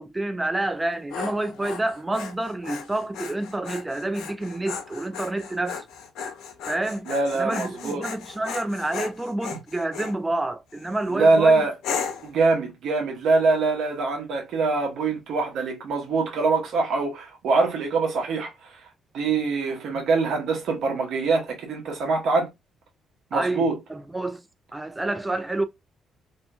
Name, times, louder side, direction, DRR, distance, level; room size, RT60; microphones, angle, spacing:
voice 1, 0.0-5.8 6.7-7.1 7.3-11.7 23.3-24.4 24.7-25.7, right 2 dB, 15° right, 0.5 m, -28 dB
Dog, 0.7-10.2 10.7-11.1 11.8-12.3, left 6 dB, 80° left, 0.7 m, -36 dB
voice 2, 7.1-8.1 9.5-9.6 11.1-11.7 12.2-18.8 19.1-22.5 23.3-23.7, right 3 dB, 75° right, 1.0 m, -23 dB
2.8 x 2.5 x 2.3 m
cardioid pair, 90°, 0 cm